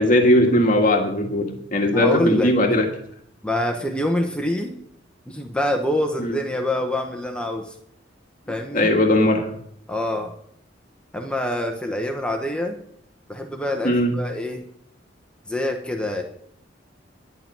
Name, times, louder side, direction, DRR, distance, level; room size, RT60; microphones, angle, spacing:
voice 1, 0.0-2.9 6.2-6.4 8.7-9.5 13.8-14.2, left 1 dB, 45° left, 2 dB, 1.8 m, -18 dB
voice 2, 1.9-2.6 3.4-4.7 5.3-7.7 8.5-8.9 9.9-10.3 11.1-12.8 13.3-14.6 15.5-16.2, left 1 dB, 5° left, 3 dB, 1.0 m, -25 dB
11.0 x 8.0 x 7.4 m, 0.67 s
head